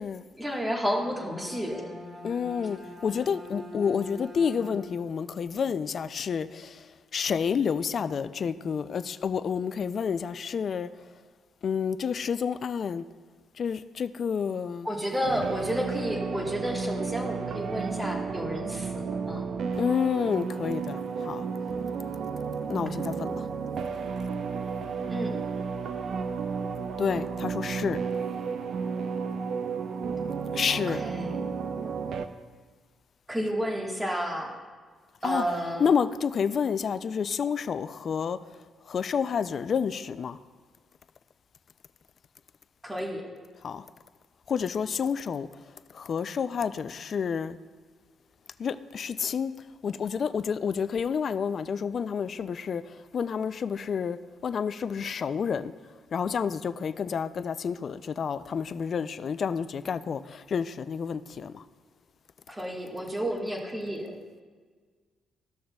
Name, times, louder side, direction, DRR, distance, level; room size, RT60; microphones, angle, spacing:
voice 1, 0.4-1.9 14.8-19.4 25.1-25.3 30.7-31.4 33.3-34.5 35.2-35.9 42.8-43.3 62.5-64.1, equal, 15° right, 1.4 m, -31 dB
Bowed string instrument, 0.8-5.1, left 1 dB, 50° right, 1.4 m, -43 dB
voice 2, 2.2-6.9 7.1-10.9 11.6-13.0 13.6-14.9 19.7-21.5 22.7-23.4 27.0-28.0 30.5-31.0 35.2-38.4 38.9-40.4 43.6-43.9 44.5-45.5 45.9-47.6 48.6-49.5 49.8-55.7 56.1-61.6, left 6 dB, 50° left, 0.3 m, -29 dB
sound 1, 15.2-32.3, right 5 dB, 65° right, 0.5 m, -32 dB
14.0 x 6.4 x 2.3 m
cardioid pair, 90°, 0 cm